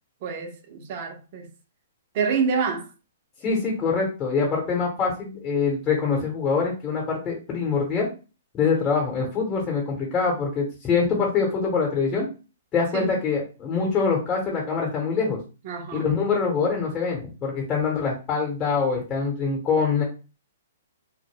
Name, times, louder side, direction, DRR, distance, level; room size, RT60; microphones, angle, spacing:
voice 1, 0.2-1.5 2.1-2.9 12.9-13.1 15.6-16.1, right 5 dB, 45° right, 0.6 m, -27 dB
voice 2, 3.4-8.1 8.5-12.3 12.7-15.4 15.9-20.0, left 5 dB, 25° left, 1.0 m, -24 dB
2.2 x 2.1 x 3.3 m
hypercardioid pair, 125°, 0 cm